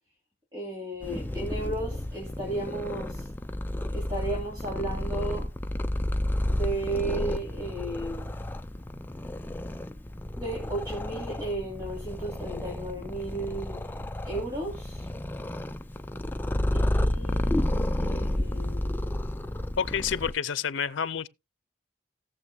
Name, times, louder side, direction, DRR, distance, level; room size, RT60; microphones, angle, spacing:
voice 1, 0.5-3.3 3.9-5.5 6.5-8.3 10.4-13.9 14.2-15.1 16.7-17.7 18.0-19.0, right 2 dB, 20° right, 2.9 m, -34 dB
Purr, 1.0-20.3, left 1 dB, 10° left, 0.4 m, -31 dB
voice 2, 19.8-21.3, left 7 dB, 90° left, 0.6 m, -29 dB
18.0 x 7.0 x 2.3 m
head